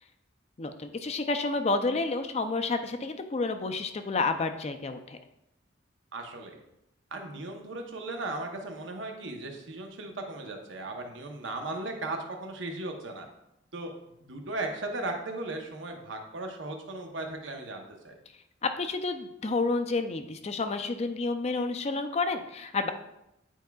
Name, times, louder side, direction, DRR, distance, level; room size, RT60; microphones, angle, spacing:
voice 1, 0.6-5.2 18.6-22.9, left 3 dB, 35° left, 8 dB, 0.4 m, -30 dB
voice 2, 6.1-6.6 7.1-13.3 13.7-13.9 14.2-18.2, right 2 dB, 75° right, 3 dB, 0.9 m, -37 dB
9.1 x 4.6 x 2.3 m, 0.85 s
head